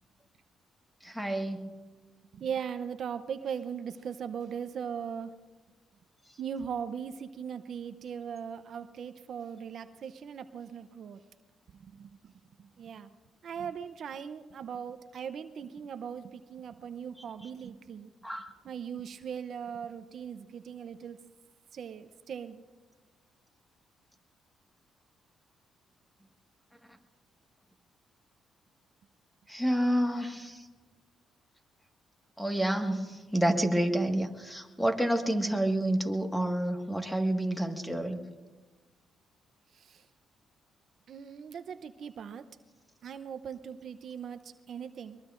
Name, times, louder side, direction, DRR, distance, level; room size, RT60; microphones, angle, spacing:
voice 1, 1.0-1.7 18.2-18.5 29.5-30.6 32.4-38.2, right 1 dB, 5° left, 4 dB, 1.6 m, -29 dB
voice 2, 2.3-5.4 6.4-11.2 11.7-12.3 12.6-13.1 13.4-18.1 18.6-21.2 21.7-22.6 39.7-40.1 41.1-42.6 43.0-45.2, right 7 dB, 60° right, 10 dB, 0.6 m, -39 dB
23.0 x 22.5 x 2.5 m, 1.3 s
cardioid pair, 90°, 0 cm